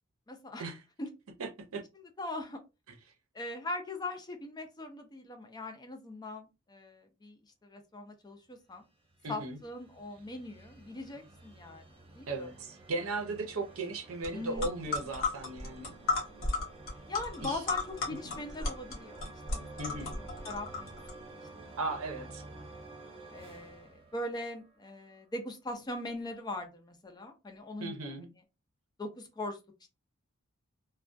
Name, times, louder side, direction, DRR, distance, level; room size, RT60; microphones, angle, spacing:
voice 1, 0.3-0.6 1.0-1.1 1.9-2.6 3.3-8.8 9.3-11.8 12.1-12.5 14.3-14.7 17.1-19.2 19.5-21.0 21.6-21.7 22.6-22.7 23.3-27.9 29.0-29.9, left 2 dB, 20° left, 0.4 m, -41 dB
voice 2, 1.4-1.8 9.2-9.6 12.3-15.9 17.4-17.6 19.8-20.1 21.8-22.4 27.8-28.3, right 2 dB, 70° right, 0.6 m, -37 dB
sound 1, 8.7-24.8, right 2 dB, 25° right, 0.6 m, -51 dB
sound 2, 14.2-14.3 14.6-21.1, left 3 dB, 65° left, 1.0 m, -35 dB
2.3 x 2.2 x 2.5 m
head